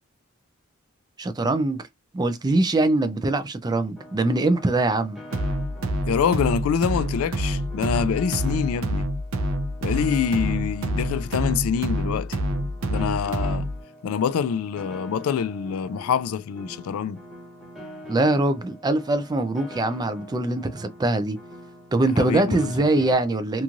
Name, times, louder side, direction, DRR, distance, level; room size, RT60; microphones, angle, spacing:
voice 1, 1.2-1.8 2.1-5.2 18.1-21.4 21.9-23.6, right 2 dB, 20° right, 0.3 m, -23 dB
Piano, 4.0-23.1, equal, ahead, 0.9 m, -43 dB
sound 1, 5.3-13.8, equal, 70° right, 0.5 m, -27 dB
voice 2, 6.0-9.1 9.8-12.4 12.9-13.7 14.0-17.2 22.2-23.1, left 7 dB, 75° left, 0.3 m, -25 dB
3.0 x 2.4 x 2.4 m
head